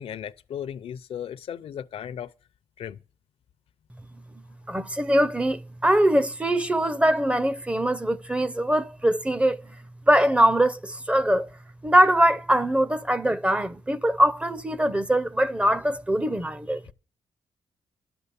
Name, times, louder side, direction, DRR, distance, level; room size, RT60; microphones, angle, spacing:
voice 1, 0.0-2.3 2.8-3.0, left 9 dB, 75° left, 0.6 m, -36 dB
voice 2, 4.7-9.8 10.1-11.5 11.8-16.8, right 1 dB, 10° right, 0.6 m, -22 dB
11.5 x 6.8 x 6.9 m
cardioid pair, 105°, 10 cm